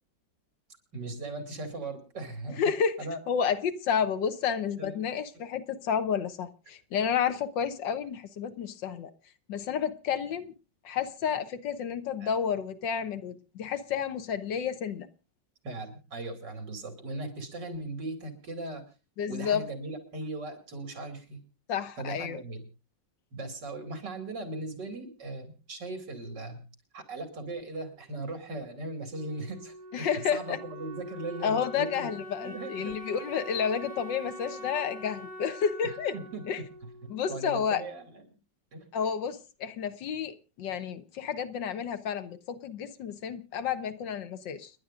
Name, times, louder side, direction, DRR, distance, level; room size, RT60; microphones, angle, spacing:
voice 1, 0.9-2.6 3.0-3.2 4.8-5.0 12.2-12.3 15.6-18.8 19.3-21.4 22.0-22.6 23.3-26.6 26.9-32.1 32.4-33.0 36.1-36.4 37.3-38.2 38.7-38.8, right 2 dB, 65° right, 3.0 m, -38 dB
voice 2, 2.6-3.0 3.3-9.1 9.5-10.5 10.8-15.1 19.2-19.7 21.7-22.4 29.9-30.6 31.4-36.2 36.5-36.6 37.1-37.8 38.9-44.7, left 7 dB, 75° left, 1.7 m, -30 dB
Wind instrument woodwind instrument, 29.1-37.8, equal, 40° right, 4.5 m, -44 dB
29.5 x 11.0 x 2.5 m
omnidirectional pair, 2.0 m